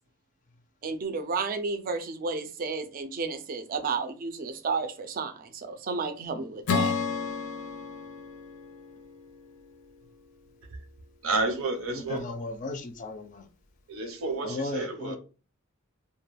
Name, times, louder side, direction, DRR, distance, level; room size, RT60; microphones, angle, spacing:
voice 1, 0.8-6.9, right 4 dB, 45° right, 0.4 m, -32 dB
Acoustic guitar / Strum, 6.7-10.1, left 5 dB, 90° left, 0.5 m, -32 dB
voice 2, 11.2-12.2 13.9-15.2, right 3 dB, 90° right, 0.7 m, -30 dB
voice 3, 11.9-13.5 14.4-15.2, left 3 dB, 40° left, 0.4 m, -35 dB
2.2 x 2.1 x 3.3 m
head